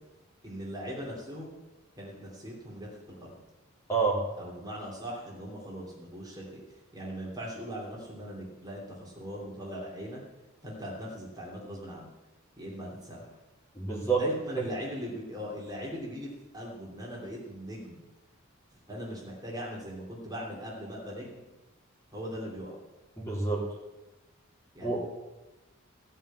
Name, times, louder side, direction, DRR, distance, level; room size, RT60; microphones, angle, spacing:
voice 1, 0.4-1.5 2.0-3.3 4.4-10.2 10.6-12.1 12.6-13.3 14.2-16.3 16.5-18.0 18.9-21.4 22.1-22.8 24.7-25.0, equal, 20° right, -4 dB, 2.9 m, -40 dB
voice 2, 3.9-4.2 13.7-14.2 23.2-23.6 24.8-25.0, right 4 dB, 15° left, -4 dB, 3.5 m, -27 dB
16.5 x 5.6 x 8.5 m, 1.1 s
head